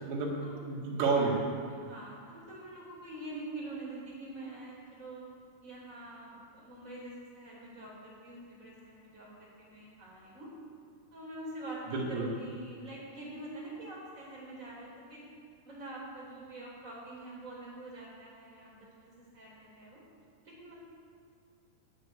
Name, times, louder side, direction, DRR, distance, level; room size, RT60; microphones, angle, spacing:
voice 1, 0.1-0.4 0.7-1.4 11.9-12.3, right 4 dB, 75° right, -3 dB, 4.0 m, -30 dB
voice 2, 1.7-5.2 5.6-10.5 11.1-15.2 15.6-20.0 20.4-20.8, right 2 dB, 20° right, -5 dB, 4.0 m, -45 dB
9.6 x 9.3 x 9.2 m, 2.1 s
omnidirectional pair, 4.8 m